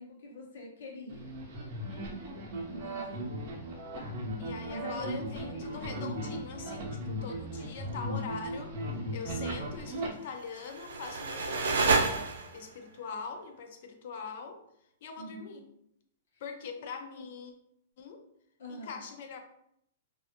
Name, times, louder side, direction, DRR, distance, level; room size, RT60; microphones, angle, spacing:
voice 1, 0.0-1.4 2.7-3.3 3.9-4.2 4.7-5.9 15.2-15.5 16.3-16.4 17.1-17.3 18.6-19.0, left 2 dB, 75° left, -1 dB, 0.8 m, -44 dB
sound 1, 1.1-10.1, right 1 dB, 40° right, 0.6 m, -37 dB
voice 2, 1.9-2.4 4.4-8.8 9.1-14.6 15.0-15.6 16.4-17.5 18.0-18.2 18.7-19.4, left 5 dB, 50° left, 5 dB, 0.4 m, -43 dB
sound 2, 10.4-12.8, right 3 dB, 85° right, 0.4 m, -29 dB
2.5 x 2.3 x 2.7 m, 0.74 s
hypercardioid pair, 170°, 0 cm